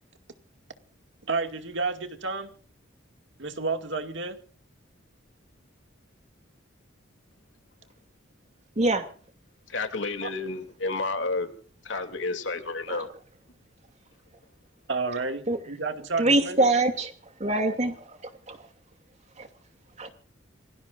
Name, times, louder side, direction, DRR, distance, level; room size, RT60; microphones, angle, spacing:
voice 1, 1.3-2.5 3.4-4.4 10.2-10.3 14.9-16.7, right 4 dB, 65° right, 2.2 m, -31 dB
voice 2, 9.7-11.5 11.8-13.1, left 3 dB, 70° left, 2.8 m, -30 dB
voice 3, 16.2-17.1 17.4-17.9 18.5-18.6 19.4-19.5 20.0-20.1, right 2 dB, 35° right, 2.6 m, -23 dB
28.0 x 19.0 x 2.6 m
head